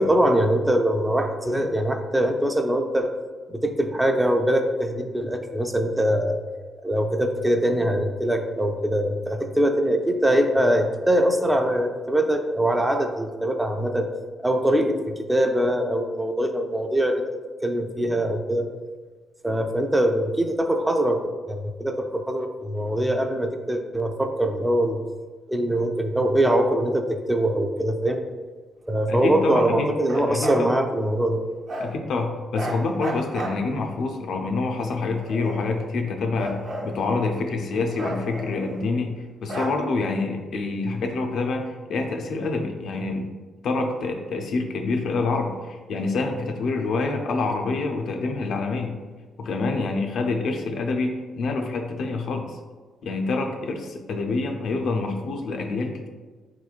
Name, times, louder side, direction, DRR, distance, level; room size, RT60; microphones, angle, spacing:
voice 1, 0.0-3.1 3.5-6.4 6.8-14.1 14.4-17.3 17.6-18.7 19.4-21.2 21.5-25.0 25.5-28.2 28.9-31.4, right 1 dB, 10° right, 5 dB, 0.3 m, -23 dB
voice 2, 29.1-29.9 30.3-30.7 31.8-36.6 36.8-39.1 39.4-43.2 43.6-48.9 49.4-52.6 53.0-56.1, left 3 dB, 70° left, 3 dB, 0.4 m, -26 dB
Bark, 30.0-30.7 31.7-31.9 32.5-34.0 34.8-35.9 36.3-37.5 37.9-39.0 39.5-40.2, right 1 dB, 55° right, 0.6 m, -34 dB
4.4 x 3.0 x 2.4 m, 1.4 s
cardioid pair, 100°, 0 cm